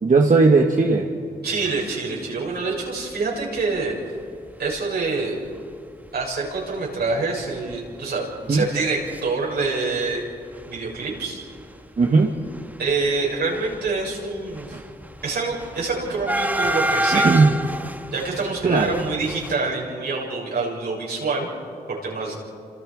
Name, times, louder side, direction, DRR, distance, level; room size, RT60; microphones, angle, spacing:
voice 1, 0.0-1.1 8.5-8.7 12.0-12.3 14.7-14.8 17.1-17.5 18.6-19.0, right 3 dB, 50° right, 1 dB, 1.9 m, -17 dB
voice 2, 1.4-3.9 4.6-5.4 6.1-10.2 10.7-11.4 12.8-14.8 15.2-17.3 18.1-21.5 21.9-22.4, right 3 dB, 75° right, -3 dB, 7.1 m, -26 dB
sound 1, 3.6-3.8 4.3-4.4 4.6-4.7 5.5-5.6 6.0-6.2 6.5-6.6 7.0-9.2 9.5-10.2 10.5-19.6, right 1 dB, 10° right, 1.5 m, -29 dB
29.0 x 26.5 x 5.0 m, 2.3 s
cardioid pair, 55°, 17 cm